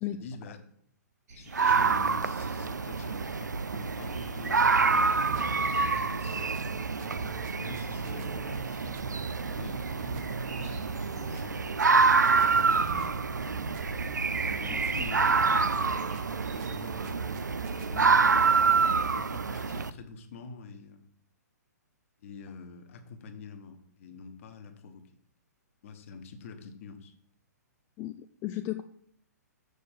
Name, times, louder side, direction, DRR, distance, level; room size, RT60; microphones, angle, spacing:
voice 1, 0.1-0.7 1.3-9.0 9.5-11.8 12.5-13.8 14.6-17.2 17.7-18.5 19.1-21.1 22.2-25.1 25.8-27.1, left 5 dB, 50° left, 6 dB, 1.2 m, -46 dB
sound 1, 1.3-16.8, right 2 dB, 65° right, 2.2 m, -49 dB
sound 2, 1.5-19.9, right 4 dB, 85° right, 0.4 m, -27 dB
sound 3, 5.2-18.0, right 8 dB, 35° right, 0.7 m, -45 dB
voice 2, 28.0-28.8, left 14 dB, 25° left, 9 dB, 0.3 m, -34 dB
6.6 x 5.1 x 6.8 m, 0.65 s
figure-of-eight pair, 120°, 9 cm